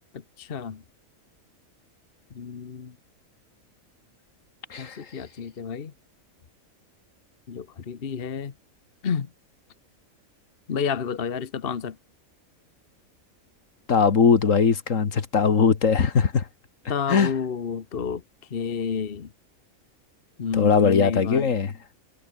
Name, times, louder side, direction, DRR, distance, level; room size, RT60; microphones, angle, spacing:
voice 1, 0.4-0.8 2.3-2.9 4.8-5.9 7.5-8.5 9.0-9.3 10.7-11.9 16.9-18.2 18.5-19.3 20.4-21.5, left 6 dB, 45° left, 1.2 m, -30 dB
voice 2, 13.9-16.4 17.1-17.3 20.5-21.7, left 6 dB, 65° left, 1.9 m, -20 dB
omnidirectional pair, 1.5 m